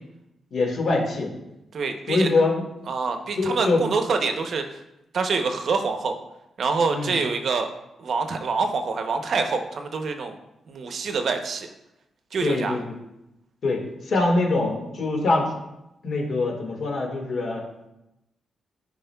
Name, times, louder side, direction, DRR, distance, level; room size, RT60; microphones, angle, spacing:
voice 1, 0.5-1.3 2.1-2.6 3.4-3.8 6.9-7.2 12.4-12.9 13.6-15.5 16.0-17.6, left 3 dB, 65° left, 0 dB, 1.8 m, -24 dB
voice 2, 1.7-2.3 2.9-4.8 5.1-6.2 6.6-7.7 8.0-10.3 10.7-11.7 12.3-12.8, right 4 dB, 60° right, 6 dB, 0.7 m, -26 dB
10.5 x 4.9 x 2.3 m, 0.89 s
cardioid pair, 95°, 0 cm